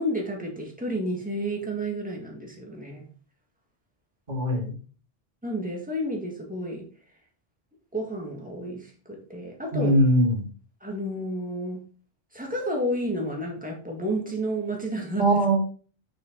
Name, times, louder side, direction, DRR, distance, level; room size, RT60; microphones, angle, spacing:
voice 1, 0.0-3.1 5.4-6.9 7.9-10.0 10.8-11.8 12.3-15.3, right 1 dB, 10° right, 0 dB, 1.9 m, -31 dB
voice 2, 4.3-4.7 9.7-10.4 15.2-15.6, right 1 dB, 40° right, 0 dB, 2.5 m, -21 dB
6.4 x 6.2 x 3.9 m, 0.38 s
omnidirectional pair, 1.1 m